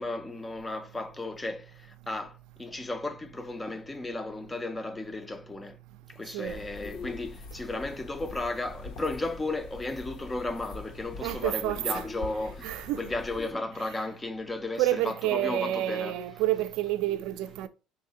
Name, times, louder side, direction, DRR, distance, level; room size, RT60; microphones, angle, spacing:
voice 1, 0.0-5.8 6.1-16.3 17.6-17.7, left 2 dB, 10° left, 0.3 m, -34 dB
sound 1, 6.5-13.5, left 3 dB, 70° left, 0.8 m, -44 dB
voice 2, 11.2-12.0 12.6-13.1 14.8-17.7, right 14 dB, 70° right, 0.3 m, -29 dB
3.9 x 3.4 x 2.8 m
cardioid pair, 145°, 0 cm